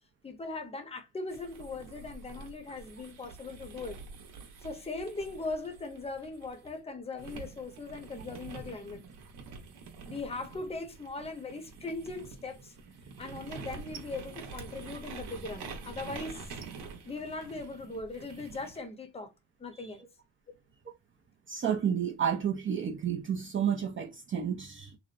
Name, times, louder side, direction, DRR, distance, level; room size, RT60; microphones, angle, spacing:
voice 1, 0.2-4.0 4.6-9.0 10.0-12.7 13.2-16.6 17.0-19.3 19.6-20.0, left 3 dB, 15° left, 0.7 m, -39 dB
sound 1, 1.3-6.7 7.2-18.8, right 4 dB, 75° right, 0.9 m, -46 dB
voice 2, 21.5-25.0, right 8 dB, 30° right, 0.5 m, -31 dB
2.9 x 2.0 x 2.4 m
cardioid pair, 90°, 40 cm